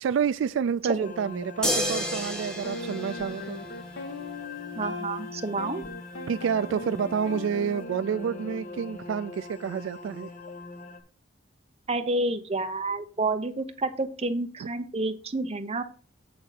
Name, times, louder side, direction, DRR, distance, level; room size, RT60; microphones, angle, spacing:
voice 1, 0.0-3.6 6.3-10.3 14.6-14.7, right 7 dB, 75° right, 0.3 m, -29 dB
sound 1, 1.0-11.0, left 3 dB, 40° left, 0.9 m, -42 dB
sound 2, 1.6-4.1 5.8-5.9, equal, 5° left, 1.2 m, -31 dB
sound 3, 1.8-2.0 2.6-9.0, left 2 dB, 75° left, 1.3 m, -39 dB
voice 2, 4.8-5.8 11.9-15.8, right 2 dB, 35° right, 0.9 m, -29 dB
8.1 x 3.8 x 6.5 m
head